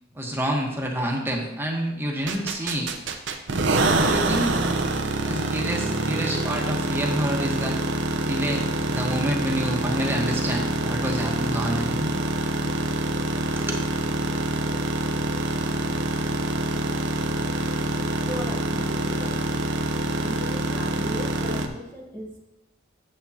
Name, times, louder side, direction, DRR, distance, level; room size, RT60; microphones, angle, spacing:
voice 1, 0.1-2.9 3.9-4.6 5.2-7.8 8.2-12.2 13.6-13.8, equal, 10° right, -1 dB, 1.2 m, -28 dB
sound 1, 2.3-21.7, right 2 dB, 70° right, 0.8 m, -26 dB
voice 2, 18.2-19.5 20.2-22.4, equal, 10° left, -4 dB, 1.0 m, -37 dB
9.5 x 7.6 x 2.8 m, 0.90 s
head